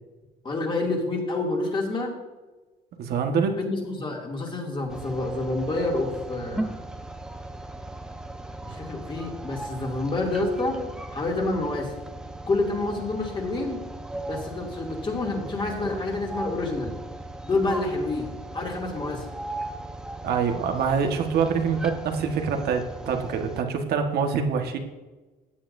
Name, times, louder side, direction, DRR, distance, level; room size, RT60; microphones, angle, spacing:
voice 1, 0.4-2.1 3.6-6.8 8.6-10.8 11.1-11.9 12.5-13.8 14.3-16.9 17.4-18.3 18.5-19.2, left 2 dB, 30° left, -1 dB, 2.6 m, -28 dB
voice 2, 3.0-3.6 20.2-24.8, right 6 dB, 70° right, 5 dB, 1.4 m, -25 dB
sound 1, 4.9-23.6, right 1 dB, 5° right, 0.8 m, -38 dB
15.0 x 8.8 x 2.7 m, 1.2 s
cardioid pair, 110°, 17 cm